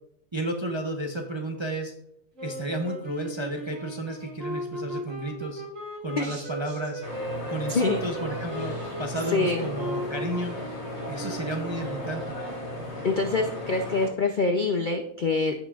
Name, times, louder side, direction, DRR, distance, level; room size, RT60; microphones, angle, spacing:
voice 1, 0.3-1.9 2.4-5.6 6.0-7.0 7.5-10.6 11.1-12.4, right 1 dB, 30° right, 2 dB, 0.5 m, -32 dB
sound 1, 2.4-12.8, equal, 55° right, 2.7 m, -37 dB
voice 2, 6.2-6.5 7.7-8.0 9.3-9.7 13.0-15.5, left 3 dB, 60° left, 5 dB, 0.5 m, -25 dB
sound 2, 7.0-14.1, left 1 dB, 45° left, 2.5 m, -36 dB
15.5 x 5.9 x 2.4 m, 0.75 s
omnidirectional pair, 1.6 m